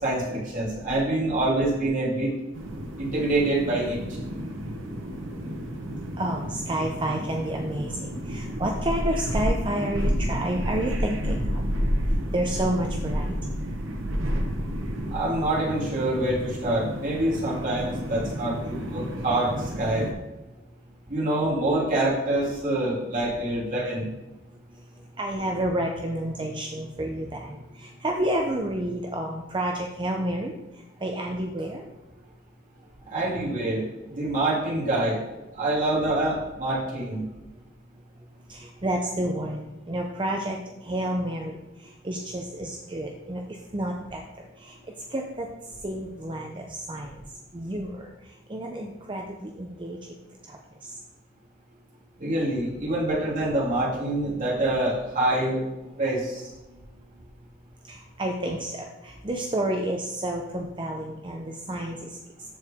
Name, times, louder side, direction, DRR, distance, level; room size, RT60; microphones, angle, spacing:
voice 1, 0.0-2.3 3.0-4.0 15.1-18.6 18.9-19.5 19.8-20.1 21.1-24.1 33.1-35.2 35.5-37.2 52.2-55.6 56.0-56.4, right 1 dB, 40° right, -7 dB, 3.2 m, -26 dB
sound 1, 2.5-20.1, equal, 70° right, 1.2 m, -30 dB
voice 2, 6.2-11.6 12.3-13.6 25.2-30.5 31.0-31.8 38.5-41.6 41.8-44.8 45.1-45.5 45.8-47.2 47.5-48.1 48.5-50.2 50.5-50.6 57.9-62.2, right 1 dB, 25° right, 1 dB, 0.7 m, -30 dB
13.5 x 4.8 x 3.6 m, 1.0 s
head